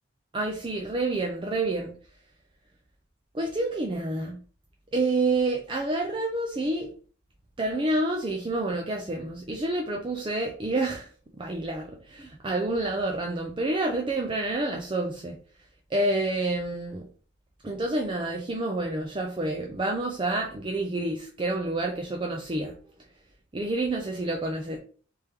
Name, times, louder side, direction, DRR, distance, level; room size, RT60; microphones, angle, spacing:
voice 1, 0.3-1.9 3.3-4.4 4.9-6.9 7.6-11.1 11.4-15.3 15.9-17.1 17.6-22.7 23.5-24.8, right 2 dB, 25° right, 0 dB, 0.4 m, -28 dB
3.4 x 3.0 x 3.3 m, 0.41 s
head